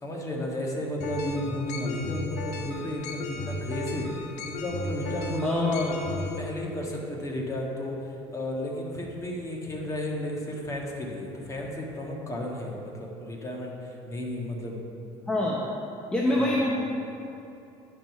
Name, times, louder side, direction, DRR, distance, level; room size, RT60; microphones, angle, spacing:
voice 1, 0.0-5.7 6.2-14.8 16.4-16.6, left 1 dB, 25° left, -1 dB, 1.5 m, -33 dB
sound 1, 1.0-6.4, left 2 dB, 80° left, 0.8 m, -36 dB
voice 2, 5.4-6.0 15.3-15.6 16.1-16.8, left 1 dB, 10° left, -4 dB, 0.9 m, -25 dB
10.0 x 4.8 x 5.7 m, 2.8 s
cardioid pair, 105°, 12 cm